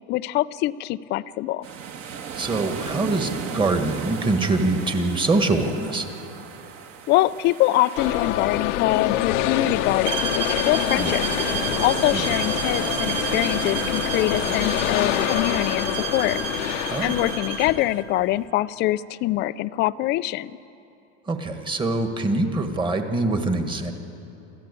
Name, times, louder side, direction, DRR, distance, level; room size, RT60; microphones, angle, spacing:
voice 1, 0.1-1.7 7.1-11.2 11.8-16.4 17.0-20.5, left 16 dB, 30° left, 16 dB, 0.4 m, -24 dB
sound 1, 1.6-17.3, right 7 dB, 40° right, 1.5 m, -36 dB
voice 2, 2.3-6.1 11.0-11.1 12.1-12.2 16.9-17.2 21.3-23.9, right 2 dB, 15° right, 6 dB, 1.6 m, -24 dB
sound 2, 8.0-18.0, left 12 dB, 90° left, 1.1 m, -26 dB
sound 3, 10.1-17.8, right 7 dB, 75° right, 2.4 m, -31 dB
27.0 x 14.0 x 8.4 m, 2.9 s
supercardioid pair, 145°, 36 cm